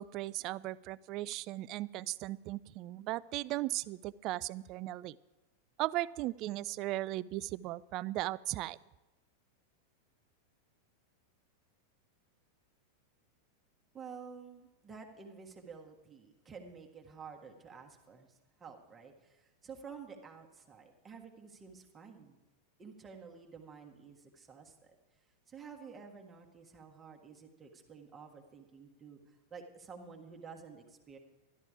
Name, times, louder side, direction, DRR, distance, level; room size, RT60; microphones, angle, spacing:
voice 1, 0.0-5.2 5.8-8.8, right 17 dB, 40° right, 20 dB, 0.3 m, -37 dB
voice 2, 13.9-22.4 22.8-25.0 25.5-31.2, right 5 dB, 20° right, 1 dB, 1.5 m, -51 dB
12.5 x 12.5 x 4.9 m, 1.1 s
figure-of-eight pair, 90°, 0 cm